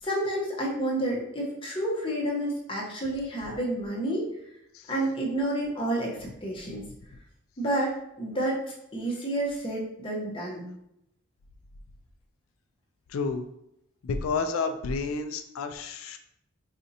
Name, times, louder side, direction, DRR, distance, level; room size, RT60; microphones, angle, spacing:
voice 1, 0.0-4.3 4.9-6.8 7.6-8.6 8.9-10.6, right 1 dB, 25° left, -3 dB, 0.8 m, -30 dB
voice 2, 13.1-13.5 14.0-16.2, left 4 dB, 85° left, 7 dB, 0.3 m, -31 dB
4.2 x 2.5 x 2.7 m, 0.80 s
head